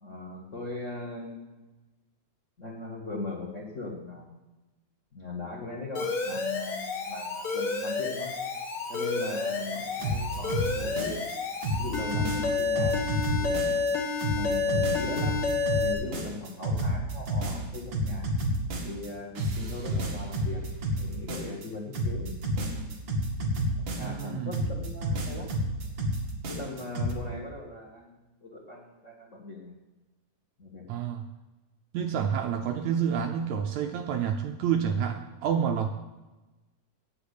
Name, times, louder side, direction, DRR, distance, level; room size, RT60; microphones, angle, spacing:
voice 1, 0.0-1.7 2.6-4.4 5.1-8.3 8.9-11.2 11.8-13.7 14.3-15.4 15.8-18.3 18.8-20.6 21.0-23.0 23.7-25.5 26.5-29.8 30.6-30.8 32.1-32.2, left 3 dB, 70° left, 0 dB, 0.7 m, -39 dB
Alarm, 5.9-15.9, left 4 dB, 50° left, 2.0 m, -30 dB
sound 1, 10.0-11.3 11.6-13.9 14.2-19.1 19.4-21.7 21.9-24.2 24.5-27.1, equal, 45° right, 1.7 m, -30 dB
voice 2, 24.0-24.5 30.9-31.2 31.9-35.9, right 8 dB, 75° right, 5 dB, 1.7 m, -28 dB
8.4 x 8.2 x 8.2 m, 1.1 s
omnidirectional pair, 3.9 m